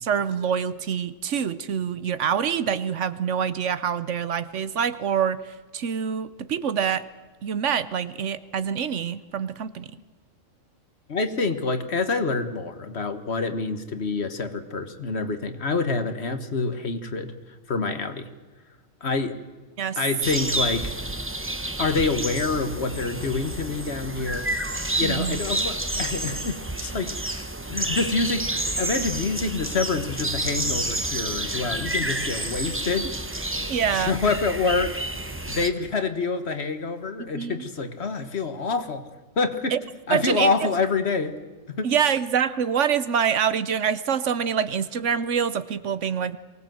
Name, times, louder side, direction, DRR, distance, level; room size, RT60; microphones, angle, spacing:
voice 1, 0.0-7.0 7.4-9.9 19.8-20.0 25.0-25.4 33.7-34.1 37.2-37.6 39.7-39.8 40.1-40.5 41.8-46.4, right 7 dB, 65° right, 14 dB, 1.1 m, -25 dB
voice 2, 11.1-17.4 17.7-18.3 19.0-19.4 20.0-20.9 21.8-24.5 25.0-27.4 27.7-33.2 33.6-35.0 35.5-39.1 39.4-39.8 40.1-41.4 41.7-41.9, left 4 dB, 55° left, 9 dB, 1.7 m, -27 dB
sound 1, 20.2-35.7, right 1 dB, 10° right, 0.9 m, -29 dB
23.5 x 18.0 x 7.8 m, 1.3 s
omnidirectional pair, 1.4 m